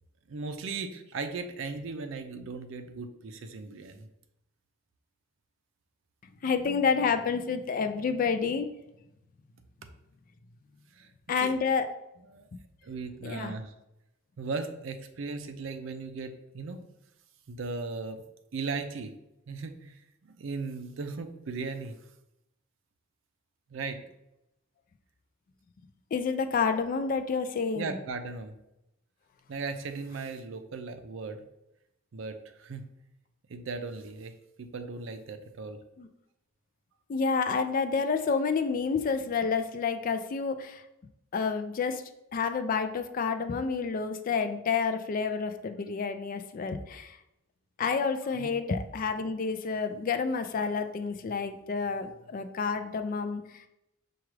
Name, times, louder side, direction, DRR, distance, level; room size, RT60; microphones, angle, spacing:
voice 1, 0.3-4.1 10.9-11.1 11.4-11.5 12.3-12.5 12.8-13.7 14.4-16.8 17.5-18.2 18.5-19.1 19.5-22.0 23.7-24.0 27.7-28.6 29.5-31.4 32.1-32.9 33.5-34.3 34.6-35.8 48.3-48.5, right 4 dB, 65° right, 7 dB, 0.5 m, -37 dB
voice 2, 6.4-8.7 11.3-11.9 13.2-13.5 26.1-27.9 36.0-36.1 37.1-40.8 41.3-42.0 42.3-47.2 47.8-53.6, left 5 dB, 40° left, 8 dB, 0.3 m, -29 dB
5.9 x 2.3 x 3.1 m, 0.86 s
head